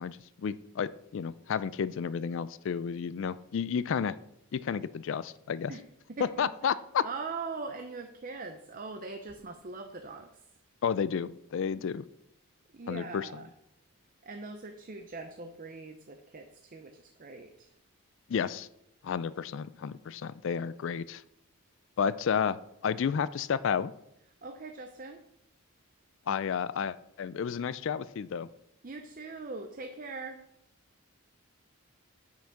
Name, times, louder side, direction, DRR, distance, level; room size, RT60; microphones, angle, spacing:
voice 1, 0.0-4.2 4.5-5.7 6.4-7.0 10.8-12.0 12.9-13.3 18.3-18.7 19.0-21.2 22.0-22.6 22.8-23.9 26.3-28.5, left 7 dB, 60° left, 16 dB, 0.3 m, -31 dB
voice 2, 5.7-6.7 7.0-10.4 11.8-11.9 12.7-13.5 14.2-17.7 24.4-25.2 28.8-30.4, right 3 dB, 40° right, 5 dB, 0.6 m, -42 dB
8.9 x 5.7 x 5.8 m, 0.80 s
head